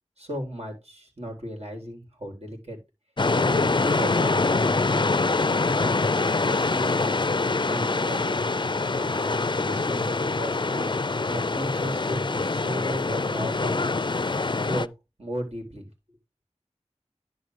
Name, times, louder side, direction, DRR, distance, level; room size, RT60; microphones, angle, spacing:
voice 1, 0.2-2.8 3.3-5.2 5.6-6.1 6.4-7.1 7.7-8.4 8.9-9.4 9.6-13.8 14.6-14.9 15.2-15.9, equal, 60° right, 1 dB, 4.0 m, -35 dB
sound 1, 3.2-14.9, left 3 dB, 40° left, 0.4 m, -24 dB
10.5 x 4.0 x 4.9 m, 0.23 s
wide cardioid pair, 45°, 12 cm